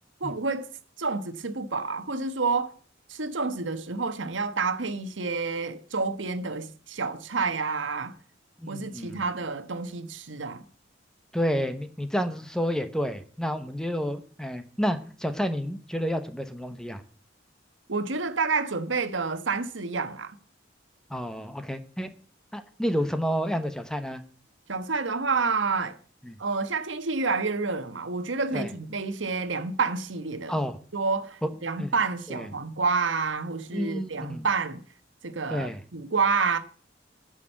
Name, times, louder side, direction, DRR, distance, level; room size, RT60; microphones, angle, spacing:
voice 1, 0.2-0.7 1.0-2.7 3.1-8.1 8.7-10.6 17.9-20.4 24.7-26.0 26.4-30.6 30.9-34.8 35.2-36.6, right 4 dB, 90° right, 1.2 m, -29 dB
voice 2, 8.6-9.2 11.3-17.0 21.1-22.1 22.5-24.2 26.2-26.4 28.5-28.7 30.5-30.8 31.4-31.5 31.8-31.9 32.3-32.5 33.7-34.4 35.5-35.8, equal, 5° left, 1.0 m, -30 dB
10.0 x 6.4 x 8.9 m
head